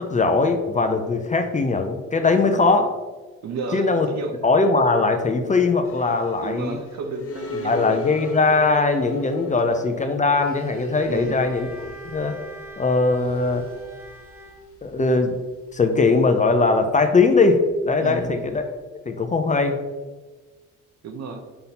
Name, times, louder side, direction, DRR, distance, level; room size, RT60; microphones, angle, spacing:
voice 1, 0.0-2.9 3.7-4.1 4.4-6.8 7.6-12.4 12.8-13.7 14.8-15.4 15.7-18.7 19.1-19.8, left 3 dB, 25° left, 6 dB, 0.6 m, -20 dB
voice 2, 3.4-4.3 6.4-8.0 11.1-11.4 18.0-18.4 21.0-21.4, right 4 dB, 60° right, 5 dB, 1.0 m, -32 dB
sound 1, 5.8-18.6, left 2 dB, 50° left, 1.0 m, -40 dB
Bowed string instrument, 10.2-14.7, right 2 dB, 10° right, 0.9 m, -40 dB
5.5 x 4.0 x 4.2 m, 1.3 s
cardioid pair, 90°, 30 cm